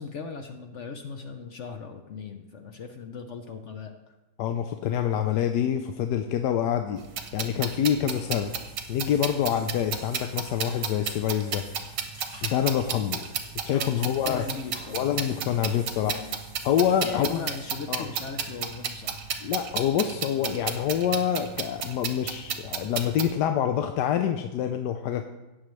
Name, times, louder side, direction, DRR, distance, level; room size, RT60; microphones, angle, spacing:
voice 1, 0.0-4.1 13.7-16.4 17.0-19.3, left 5 dB, 60° left, 6 dB, 0.8 m, -38 dB
voice 2, 4.4-7.0 7.3-8.5 8.9-11.6 12.4-13.2 13.6-14.4 14.9-16.2 16.6-17.4 17.9-18.1 19.4-25.2, left 9 dB, 75° left, 7 dB, 1.2 m, -26 dB
sound 1, 7.0-23.3, right 7 dB, 90° right, 1.6 m, -33 dB
Water / Bathtub (filling or washing), 8.4-17.6, right 1 dB, 30° right, 3.6 m, -52 dB
17.5 x 6.5 x 3.2 m, 1.0 s
omnidirectional pair, 1.9 m